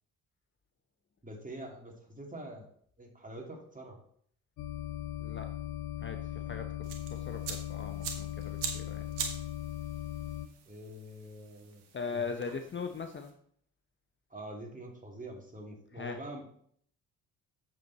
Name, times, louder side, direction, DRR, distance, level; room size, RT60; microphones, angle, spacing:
voice 1, 1.2-2.7 3.0-4.0 10.7-11.8 12.1-12.4 14.3-16.5, right 1 dB, 20° right, 1 dB, 2.8 m, -45 dB
sound 1, 4.6-10.5, left 12 dB, 60° left, 0.7 m, -39 dB
voice 2, 5.2-5.5 6.0-6.7 7.1-9.0 11.9-13.4 15.9-16.2, left 5 dB, 30° left, 6 dB, 0.8 m, -40 dB
sound 2, 6.8-13.3, right 6 dB, 75° right, 1.6 m, -43 dB
8.1 x 7.0 x 4.2 m, 0.62 s
hypercardioid pair, 50°, 41 cm